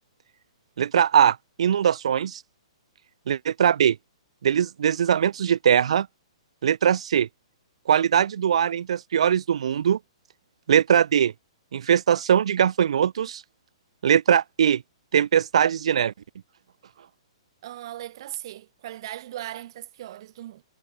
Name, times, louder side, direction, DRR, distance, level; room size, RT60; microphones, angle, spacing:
voice 1, 0.8-2.4 3.3-4.0 4.4-6.1 6.6-7.3 7.9-10.0 10.7-11.3 11.7-13.4 14.0-14.8 15.1-16.1, right 8 dB, 70° right, 0.5 m, -21 dB
voice 2, 17.6-20.6, right 13 dB, 50° right, 1.6 m, -38 dB
hypercardioid pair, 155°, 3 cm